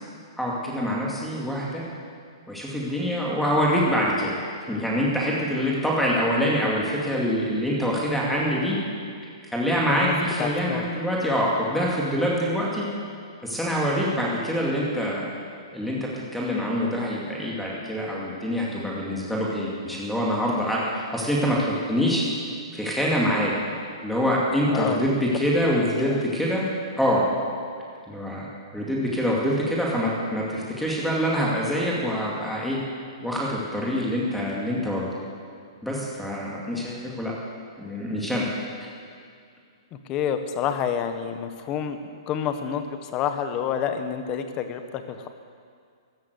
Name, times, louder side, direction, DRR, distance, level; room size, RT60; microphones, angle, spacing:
voice 1, 0.4-1.8 2.5-4.3 4.7-8.8 9.5-12.9 13.4-15.3 15.7-22.2 22.7-23.5 24.0-26.7 27.0-27.2 28.1-28.5 28.7-32.8 33.2-35.1 35.8-37.3 37.8-38.5, equal, ahead, -4 dB, 2.3 m, -25 dB
voice 2, 10.4-10.9 24.7-25.0 26.0-26.2 39.9-45.3, left 8 dB, 25° left, 8 dB, 1.0 m, -29 dB
13.5 x 11.5 x 8.0 m, 2.2 s
hypercardioid pair, 160°, 3 cm